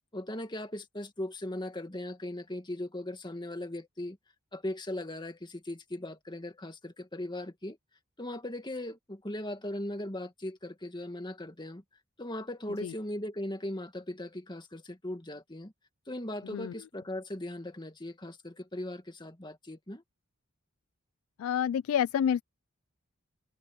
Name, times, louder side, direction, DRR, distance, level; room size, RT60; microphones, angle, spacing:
voice 1, 0.1-4.2 4.5-7.8 8.2-11.8 12.2-15.7 16.1-20.0, left 1 dB, 20° left, 2.0 m, -38 dB
voice 2, 21.4-22.4, left 8 dB, 85° left, 0.3 m, -28 dB
head